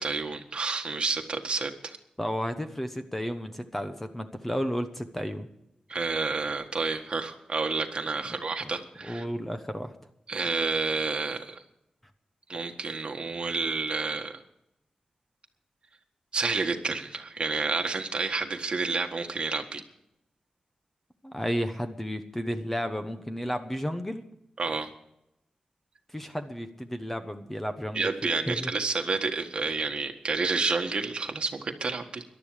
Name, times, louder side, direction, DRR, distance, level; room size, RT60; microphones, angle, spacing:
voice 1, 0.0-2.0 5.9-9.3 10.3-11.6 12.5-14.4 16.3-19.8 24.6-24.9 27.9-32.2, right 4 dB, 45° right, 4 dB, 1.6 m, -30 dB
voice 2, 2.2-5.5 8.6-8.7 9.0-9.9 21.2-24.3 26.1-28.1 28.5-28.7, equal, 10° left, 8 dB, 1.0 m, -32 dB
18.0 x 12.0 x 5.0 m, 0.81 s
wide cardioid pair, 160°, 2 cm